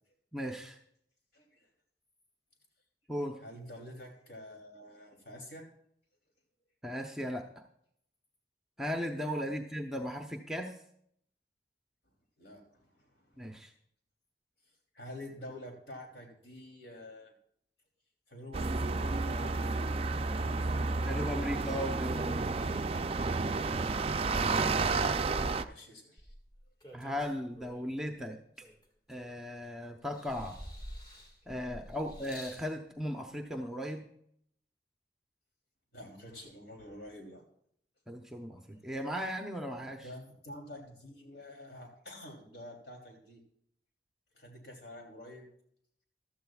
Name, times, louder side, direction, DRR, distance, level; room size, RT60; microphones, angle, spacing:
voice 1, 0.3-0.8 3.1-3.4 6.8-7.5 8.8-10.7 13.4-13.7 21.1-22.5 24.0-24.1 25.4-25.6 26.9-28.7 29.1-30.6 31.5-34.1 38.1-40.1, equal, 5° right, 3 dB, 0.7 m, -37 dB
voice 2, 1.3-1.7 3.4-5.7 9.4-9.6 12.4-13.6 14.9-17.3 18.3-21.4 23.8-26.3 35.9-37.4 40.0-43.4 44.3-45.5, left 1 dB, 65° left, 2 dB, 3.1 m, -49 dB
sound 1, 18.5-25.6, right 3 dB, 35° right, 0.4 m, -31 dB
sound 2, 26.2-28.0 28.6-29.6 30.1-32.7 33.6-33.7, equal, 25° left, 1.9 m, -49 dB
15.0 x 12.5 x 2.4 m, 0.68 s
head